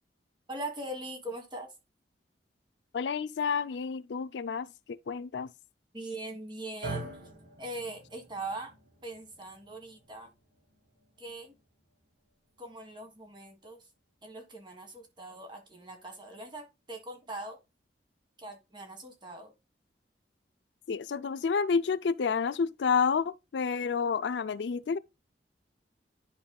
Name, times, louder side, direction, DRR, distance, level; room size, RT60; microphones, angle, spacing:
voice 1, 0.5-1.7 5.9-7.1 7.6-8.7 9.0-10.3 11.2-11.5 12.6-13.8 14.2-17.6 18.4-19.5, right 2 dB, 25° right, 1.7 m, -41 dB
voice 2, 2.9-5.5 20.9-25.0, left 5 dB, 80° left, 0.4 m, -30 dB
sound 1, 6.8-15.1, right 3 dB, 55° right, 2.2 m, -47 dB
10.5 x 5.3 x 2.3 m
head